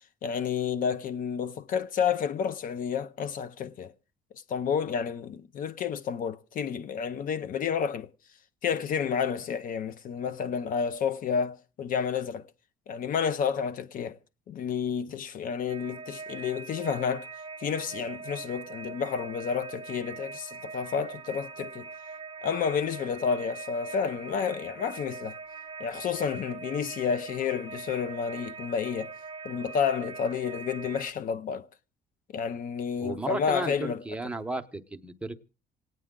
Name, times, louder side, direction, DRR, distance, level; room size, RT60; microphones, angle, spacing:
voice 1, 0.2-3.9 4.5-8.1 8.6-12.5 12.9-14.2 14.5-17.3 17.6-21.9 22.4-25.4 25.8-29.1 29.4-31.7 32.3-34.0, left 7 dB, 55° left, 0.7 m, -30 dB
sound 1, 15.7-31.1, right 4 dB, 30° right, 0.7 m, -42 dB
voice 2, 33.0-35.4, right 2 dB, 5° right, 0.8 m, -34 dB
26.5 x 9.2 x 3.7 m
cardioid pair, 110°, 17 cm